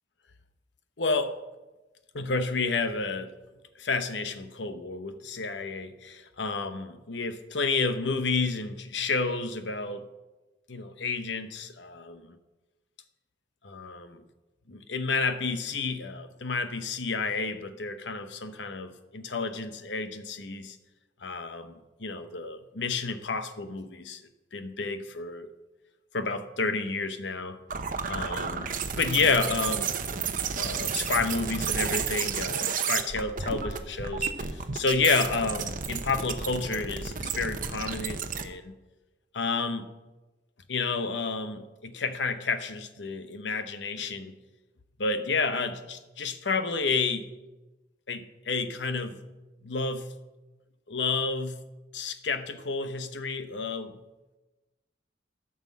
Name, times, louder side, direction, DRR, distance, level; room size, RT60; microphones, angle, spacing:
voice 1, 1.0-1.4 2.1-3.3 3.8-10.0 10.7-12.2 13.6-14.2 14.7-20.8 21.2-21.7 22.0-24.2 24.5-25.5 26.1-27.6 28.1-30.0 30.6-38.7 39.3-39.9 40.7-44.4 45.0-47.3 48.1-49.2 49.6-50.1 50.9-51.6 51.9-54.0, left 4 dB, 70° left, 10 dB, 1.0 m, -30 dB
sound 1, 27.7-38.4, right 6 dB, 50° right, 0.8 m, -32 dB
13.5 x 6.1 x 7.3 m, 1.1 s
head